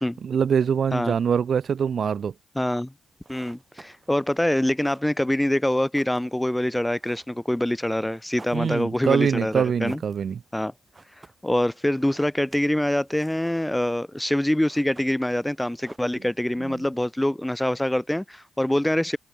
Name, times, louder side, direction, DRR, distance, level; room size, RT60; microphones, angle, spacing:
voice 1, 0.2-2.3 8.5-10.4 16.6-16.8, right 7 dB, 50° right, 0.8 m, -24 dB
voice 2, 2.6-2.9 3.3-10.0 10.5-10.7 11.4-19.2, left 1 dB, 5° left, 0.4 m, -25 dB
sound 1, 3.1-16.7, right 3 dB, 25° right, 3.2 m, -55 dB
cardioid pair, 90°, 0 cm